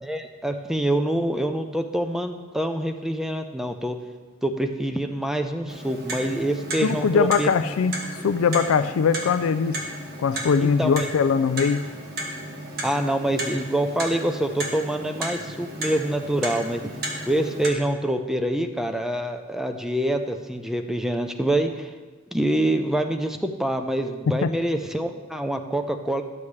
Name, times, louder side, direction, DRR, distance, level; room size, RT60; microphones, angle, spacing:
voice 1, 0.0-4.0 4.4-7.5 10.6-11.1 12.8-16.8 17.3-21.9 22.3-26.2, right 1 dB, ahead, 6 dB, 0.5 m, -26 dB
Clock, 5.7-17.7, right 1 dB, 50° right, 1.3 m, -34 dB
voice 2, 6.8-7.9 8.2-9.8 10.2-11.8 24.4-24.5, left 6 dB, 85° left, 10 dB, 0.4 m, -21 dB
13.0 x 7.1 x 3.3 m, 1.3 s
head